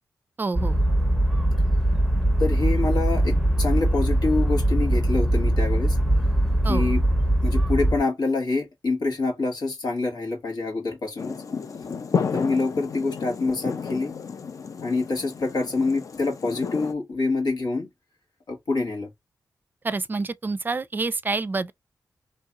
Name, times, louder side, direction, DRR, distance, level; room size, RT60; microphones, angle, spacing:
voice 1, 0.4-0.8 6.6-6.9 19.8-21.7, right 3 dB, 30° right, 0.4 m, -27 dB
sound 1, 0.5-8.0, right 1 dB, ahead, 0.7 m, -21 dB
voice 2, 2.4-6.0 6.6-7.0 7.4-11.4 12.3-14.1 14.8-17.9 18.5-19.1, left 3 dB, 90° left, 1.8 m, -26 dB
sound 2, 11.2-16.9, left 6 dB, 55° left, 0.5 m, -32 dB
3.1 x 2.8 x 3.5 m
wide cardioid pair, 150°, 7 cm